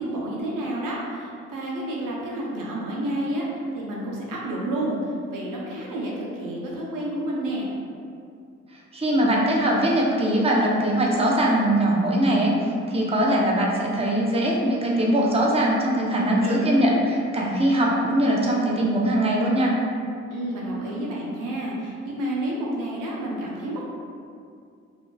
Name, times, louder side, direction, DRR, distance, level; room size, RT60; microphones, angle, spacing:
voice 1, 0.0-7.7 16.1-17.0 20.3-23.9, right 1 dB, 70° right, -4 dB, 0.8 m, -30 dB
voice 2, 8.9-12.6 12.9-19.7, right 1 dB, 20° right, -3 dB, 0.7 m, -21 dB
4.4 x 2.7 x 2.3 m, 2.4 s
hypercardioid pair, 45°, 33 cm